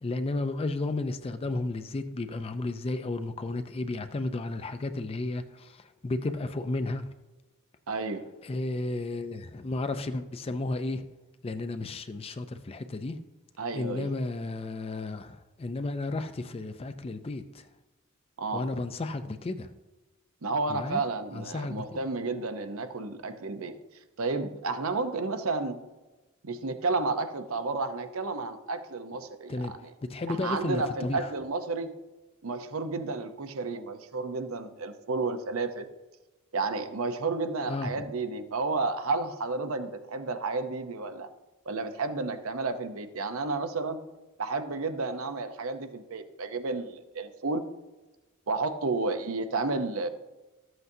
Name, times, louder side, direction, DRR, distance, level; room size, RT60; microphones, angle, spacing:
voice 1, 0.0-7.1 8.4-11.0 11.4-13.2 13.7-17.6 18.5-19.7 20.7-21.0 21.3-22.0 29.5-29.7 30.1-31.2 37.7-38.1, left 2 dB, 25° left, 0.4 m, -33 dB
voice 2, 7.9-8.2 13.6-14.1 18.4-18.7 20.4-23.8 24.2-25.8 26.4-29.9 30.3-31.9 32.4-35.9 36.5-41.3 41.7-44.1 44.4-47.7 48.5-50.1, right 3 dB, 75° right, 0.7 m, -31 dB
13.5 x 7.9 x 2.7 m
head